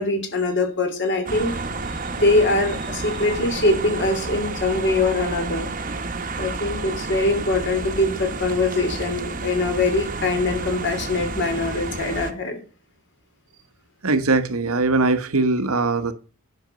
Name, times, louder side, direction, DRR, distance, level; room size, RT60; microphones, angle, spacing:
voice 1, 0.0-1.6 2.2-5.7 6.4-12.6, left 2 dB, 55° left, 5 dB, 3.1 m, -22 dB
sound 1, 1.3-12.3, right 3 dB, 35° right, 1.1 m, -30 dB
voice 2, 14.0-16.1, right 3 dB, 70° right, 11 dB, 1.1 m, -21 dB
10.5 x 6.6 x 5.2 m, 0.38 s
head